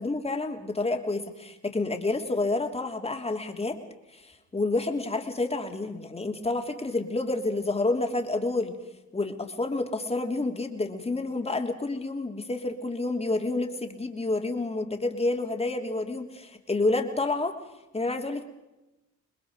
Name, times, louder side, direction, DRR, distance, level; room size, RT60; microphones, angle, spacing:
voice 1, 0.0-3.8 4.1-8.8 9.1-17.5 17.9-18.4, left 2 dB, 20° left, 4 dB, 3.1 m, -29 dB
28.0 x 21.5 x 5.2 m, 0.97 s
cardioid pair, 100°, 29 cm